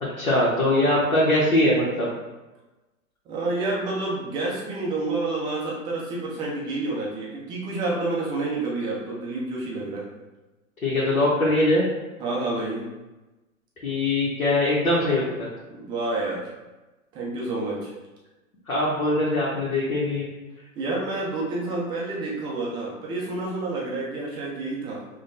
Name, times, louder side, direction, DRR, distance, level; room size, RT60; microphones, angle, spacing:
voice 1, 0.2-2.1 10.8-11.8 13.8-15.2 18.7-20.3, left 1 dB, 85° left, -6 dB, 1.0 m, -22 dB
voice 2, 3.3-10.0 12.2-12.9 15.7-16.5 17.1-17.9 20.8-25.1, right 2 dB, 10° right, -4 dB, 0.3 m, -29 dB
5.0 x 2.3 x 2.5 m, 1.1 s
figure-of-eight pair, 105°, 42 cm